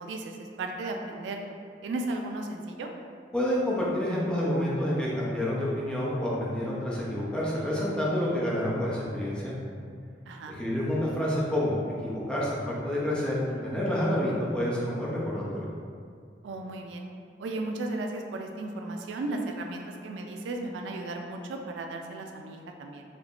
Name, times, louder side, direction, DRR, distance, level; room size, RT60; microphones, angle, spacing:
voice 1, 0.0-1.4 1.8-2.9 10.3-10.6 16.4-17.1 17.4-23.0, right 2 dB, 90° right, 3 dB, 0.3 m, -35 dB
voice 2, 3.3-9.5 10.5-15.7, left 1 dB, 5° left, -7 dB, 0.5 m, -28 dB
3.5 x 2.8 x 2.4 m, 2.2 s
head